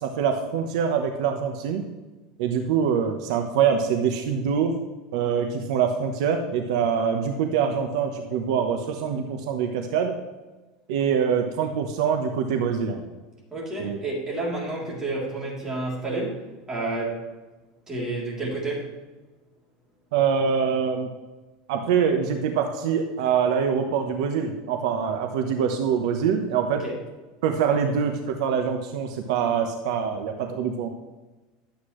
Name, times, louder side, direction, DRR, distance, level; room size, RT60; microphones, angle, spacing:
voice 1, 0.0-1.8 2.4-4.7 5.1-10.2 10.9-13.0 13.8-14.0 20.1-21.1 21.7-26.8 27.4-30.9, right 7 dB, 75° right, 5 dB, 1.0 m, -24 dB
voice 2, 13.5-17.3 17.9-18.9 26.8-26.9, right 2 dB, 15° right, -4 dB, 3.2 m, -30 dB
11.5 x 8.2 x 3.2 m, 1.2 s
supercardioid pair, 140°, 3 cm